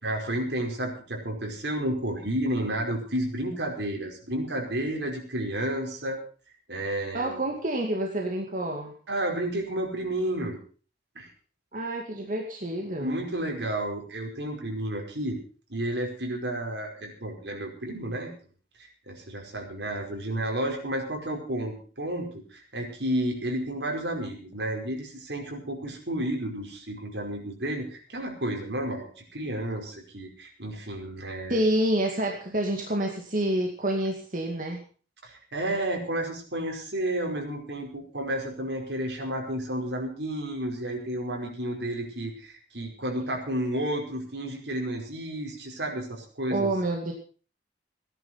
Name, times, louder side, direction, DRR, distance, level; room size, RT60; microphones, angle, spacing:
voice 1, 0.0-6.2 6.7-7.4 9.1-10.6 11.1-11.3 13.0-15.4 15.7-18.3 18.8-31.6 35.2-46.7, right 1 dB, 80° right, 2 dB, 5.1 m, -31 dB
voice 2, 7.1-8.9 11.7-13.2 31.5-34.8 46.5-47.1, right 1 dB, 50° right, 1 dB, 2.3 m, -28 dB
17.5 x 11.0 x 5.8 m, 0.41 s
head